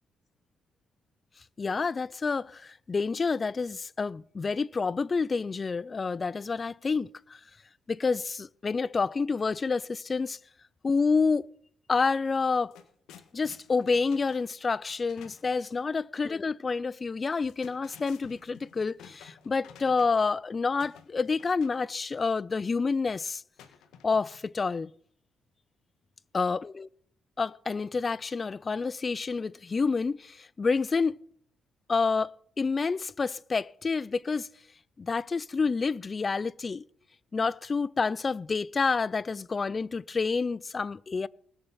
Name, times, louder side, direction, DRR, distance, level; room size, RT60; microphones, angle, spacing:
voice 1, 1.6-7.4 7.9-10.4 10.8-11.5 11.9-12.7 13.3-23.4 24.0-24.9 26.3-26.9 27.4-31.2 31.9-34.5 35.0-36.9 37.3-41.3, left 4 dB, 35° left, 0.4 m, -28 dB
sound 1, 12.1-12.2 12.5-15.6 17.2-20.4 20.8-21.8 23.6-24.5, left 8 dB, 85° left, 1.5 m, -54 dB
19.5 x 7.0 x 5.6 m
cardioid pair, 90°, 0 cm